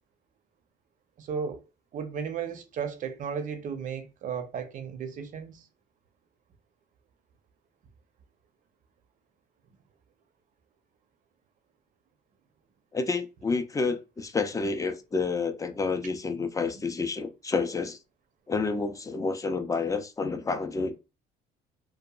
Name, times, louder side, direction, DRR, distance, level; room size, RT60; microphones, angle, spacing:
voice 1, 1.2-1.6 1.9-5.6, right 6 dB, 50° right, 0.6 m, -34 dB
voice 2, 12.9-18.0 18.5-21.0, left 4 dB, 20° left, 0.4 m, -29 dB
2.7 x 2.3 x 2.3 m
cardioid pair, 110°, 17 cm